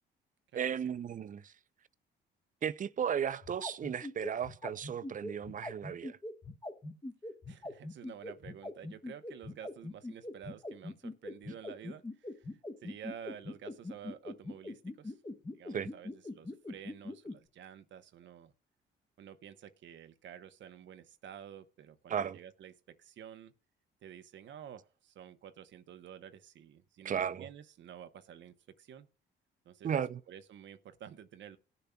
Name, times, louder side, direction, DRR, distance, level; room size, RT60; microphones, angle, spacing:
voice 1, 0.5-1.5 2.6-6.2 15.7-15.9 22.1-22.4 27.0-27.5 29.8-30.2, right 8 dB, 40° right, 0.5 m, -35 dB
sound 1, 3.4-17.3, left 2 dB, 20° left, 1.3 m, -41 dB
voice 2, 7.5-15.2 15.5-18.5 19.2-23.5 24.0-29.1 29.6-30.0 30.3-31.6, right 9 dB, 70° right, 0.9 m, -50 dB
18.5 x 6.9 x 2.3 m
cardioid pair, 90°, 20 cm